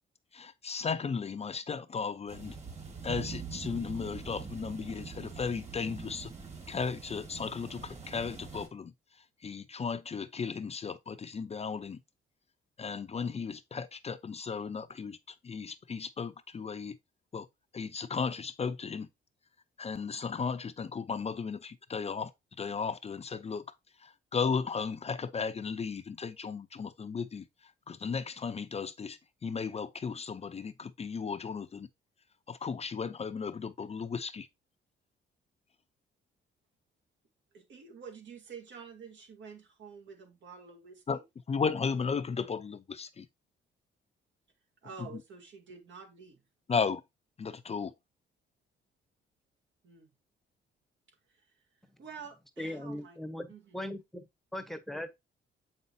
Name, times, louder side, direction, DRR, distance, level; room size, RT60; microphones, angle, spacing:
voice 1, 0.3-2.6 3.0-6.3 6.7-8.9 9.4-12.0 12.8-17.0 17.3-17.5 17.7-19.1 19.8-22.3 22.6-23.6 24.0-27.4 27.9-31.9 32.5-34.5 41.1-41.2 41.5-43.3 45.0-45.1 46.7-47.0 47.4-47.9, left 5 dB, 30° left, 0.6 m, -35 dB
sound 1, 2.3-8.7, right 5 dB, 35° right, 2.3 m, -44 dB
voice 2, 37.5-41.2 44.8-46.4 49.8-50.1 51.1-51.6 52.0-53.2 53.5-53.8, right 6 dB, 70° right, 2.0 m, -49 dB
voice 3, 52.6-53.5 53.7-55.1, left 1 dB, ahead, 0.9 m, -39 dB
7.3 x 5.5 x 2.7 m
cardioid pair, 90°, 20 cm